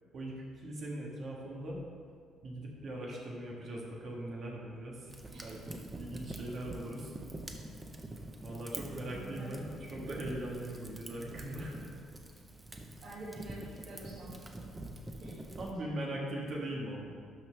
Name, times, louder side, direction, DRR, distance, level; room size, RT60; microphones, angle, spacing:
voice 1, 0.1-1.8 2.4-5.1 5.4-7.1 8.4-11.9 15.6-17.1, right 1 dB, 40° right, -2 dB, 1.5 m, -40 dB
Fire, 5.1-15.7, right 1 dB, 10° right, 0.6 m, -46 dB
voice 2, 9.1-9.6 13.0-14.7 15.1-16.1, right 1 dB, 65° right, -9 dB, 2.0 m, -48 dB
12.0 x 5.8 x 3.3 m, 2.1 s
cardioid pair, 170°, 0 cm